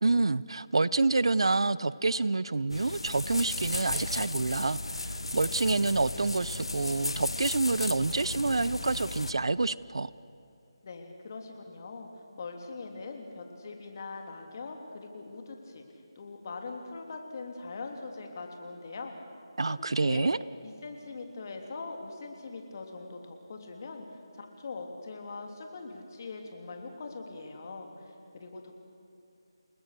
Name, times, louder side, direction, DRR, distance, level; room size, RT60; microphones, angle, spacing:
voice 1, 0.0-10.1 19.6-20.4, right 3 dB, 70° right, 19 dB, 0.7 m, -28 dB
sound 1, 2.7-9.3, left 2 dB, 90° left, 0.9 m, -35 dB
voice 2, 10.8-12.1 12.4-15.8 16.1-19.1 19.7-20.3 20.6-24.0 24.3-28.7, left 3 dB, 40° left, 3 dB, 3.2 m, -42 dB
29.5 x 19.5 x 6.8 m, 2.7 s
figure-of-eight pair, 165°, 3 cm